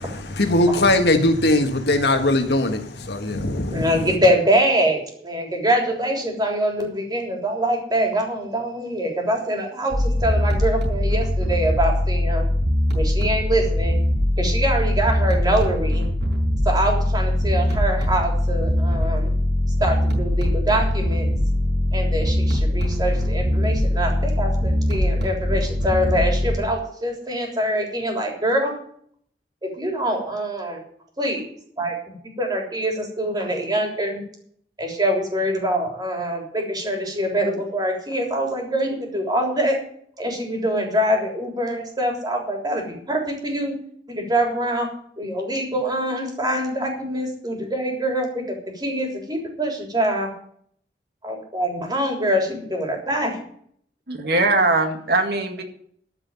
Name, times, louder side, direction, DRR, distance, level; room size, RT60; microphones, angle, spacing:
voice 1, 0.0-4.1, left 1 dB, 65° left, 6 dB, 1.6 m, -20 dB
voice 2, 3.6-12.5 12.9-14.0 14.4-16.1 16.6-19.3 19.8-21.3 21.9-28.8 29.6-30.8 31.2-31.5 31.8-34.2 34.8-39.8 40.2-43.8 44.1-44.9 45.2-50.3 51.2-53.4, right 1 dB, 25° right, 1 dB, 3.5 m, -24 dB
sound 1, 9.9-26.6, left 1 dB, 80° right, 4.6 m, -21 dB
voice 3, 54.1-55.6, right 2 dB, 60° right, 4 dB, 2.0 m, -20 dB
14.0 x 5.7 x 9.1 m, 0.63 s
head